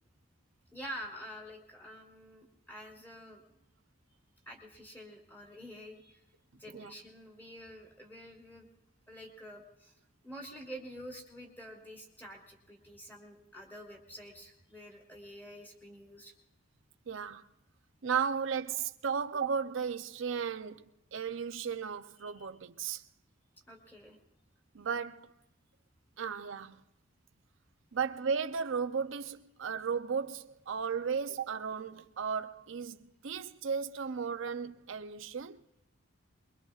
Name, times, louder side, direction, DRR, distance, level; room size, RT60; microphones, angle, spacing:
voice 1, 0.7-3.4 4.5-6.2 6.6-8.7 9.1-9.9 10.2-16.3 22.2-22.5 23.7-24.2, equal, 10° left, 2.5 m, -48 dB
voice 2, 17.1-17.4 18.0-23.0 24.7-25.3 26.2-26.8 27.9-35.6, right 6 dB, 70° right, 0.5 m, -35 dB
23.5 x 23.0 x 2.4 m
head